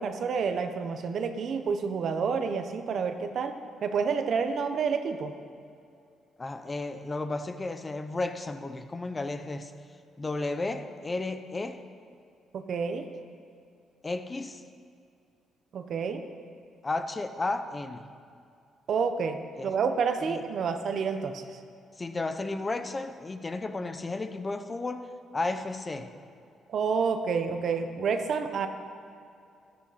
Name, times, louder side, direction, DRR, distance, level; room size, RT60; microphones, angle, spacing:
voice 1, 0.0-3.5 3.8-5.3 12.5-13.0 15.7-16.2 18.9-21.4 26.7-28.7, right 5 dB, 60° right, 7 dB, 1.0 m, -29 dB
voice 2, 6.4-9.7 10.2-11.8 14.0-14.6 16.8-18.1 19.6-19.7 20.2-20.4 22.0-25.1 25.3-26.1, left 2 dB, 25° left, 9 dB, 0.8 m, -33 dB
14.0 x 12.5 x 4.3 m, 2.5 s
cardioid pair, 90°, 0 cm